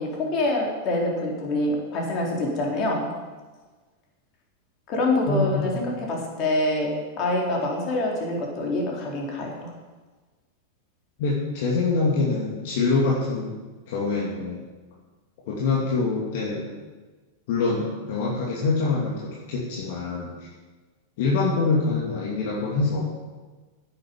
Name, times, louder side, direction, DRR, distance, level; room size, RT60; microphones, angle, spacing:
voice 1, 0.0-3.1 4.9-6.9 7.2-9.7, left 2 dB, 45° left, -1 dB, 4.1 m, -25 dB
voice 2, 5.3-6.0 11.2-13.6 13.9-14.6 15.5-16.7 17.5-20.5 21.2-23.0, left 3 dB, 60° left, -4 dB, 2.5 m, -25 dB
10.5 x 8.7 x 7.3 m, 1.3 s
hypercardioid pair, 95°, 0 cm